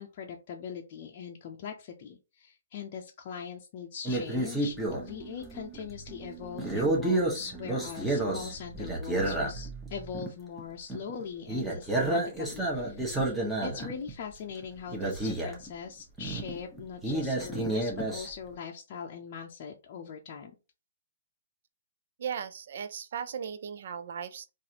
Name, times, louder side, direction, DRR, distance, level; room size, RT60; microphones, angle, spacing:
voice 1, 0.0-13.3 13.6-20.5, left 7 dB, 40° left, 0.6 m, -41 dB
sound 1, 4.0-5.0 5.6-5.8 6.6-9.9 10.1-10.3 10.6-10.7 10.9-11.2 11.5-14.1 14.6-14.7 14.9-15.7 16.2-18.3, right 2 dB, 5° right, 1.1 m, -30 dB
sound 2, 4.9-10.2, right 3 dB, 35° right, 1.1 m, -45 dB
voice 2, 22.2-24.5, right 7 dB, 60° right, 0.5 m, -37 dB
3.9 x 2.5 x 2.9 m
hypercardioid pair, 135°, 0 cm